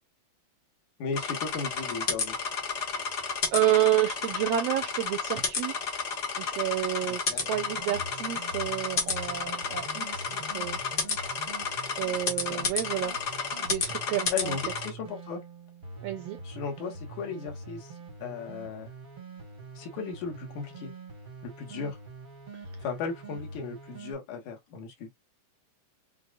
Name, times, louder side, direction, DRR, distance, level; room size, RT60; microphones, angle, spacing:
voice 1, 1.0-2.4 7.1-7.4 12.5-12.7 14.3-15.4 16.4-18.0 18.2-18.9 19.8-20.9 21.4-22.0 22.8-25.1, left 5 dB, 80° left, 2.7 m, -36 dB
sound 1, 1.1-14.9, left 5 dB, 55° left, 1.2 m, -32 dB
voice 2, 3.2-5.7 6.4-10.8 12.0-13.1 13.6-14.6 16.0-16.4, right 13 dB, 80° right, 1.5 m, -29 dB
sound 2, 7.5-24.1, right 3 dB, 50° right, 0.6 m, -44 dB
6.7 x 2.2 x 2.3 m
omnidirectional pair, 3.4 m